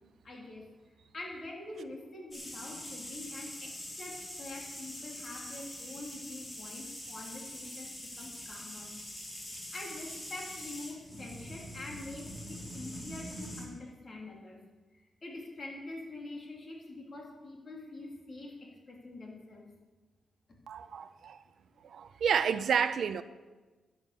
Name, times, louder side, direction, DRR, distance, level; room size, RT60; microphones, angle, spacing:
voice 1, 0.2-0.7 1.1-8.9 9.6-14.6 15.0-19.7, left 2 dB, 35° left, 3.0 m, -45 dB
sound 1, 2.3-13.6, left 1 dB, 20° left, 3.2 m, -44 dB
voice 2, 20.7-21.4 21.8-23.2, right 7 dB, 60° right, 0.5 m, -30 dB
11.0 x 9.9 x 6.9 m
wide cardioid pair, 145°, 0 cm